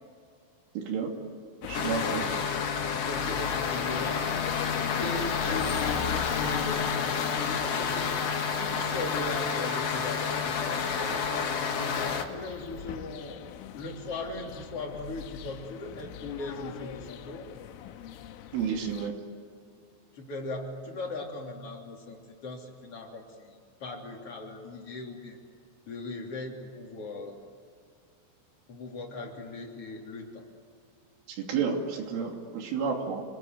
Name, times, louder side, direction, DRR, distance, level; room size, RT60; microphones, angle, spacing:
voice 1, 0.8-1.1 1.6-2.2 18.5-19.1 31.3-33.2, right 6 dB, 75° right, 2 dB, 5.2 m, -31 dB
sound 1, 1.6-19.1, left 10 dB, 85° left, 3.6 m, -40 dB
sound 2, 1.7-12.2, left 6 dB, 55° left, 1.8 m, -30 dB
voice 2, 3.0-4.5 5.0-8.1 8.5-13.4 13.7-17.5 20.1-25.4 25.9-27.4 28.7-30.5, left 2 dB, 35° left, 0 dB, 3.6 m, -39 dB
29.0 x 20.0 x 9.4 m, 2.3 s
omnidirectional pair, 5.7 m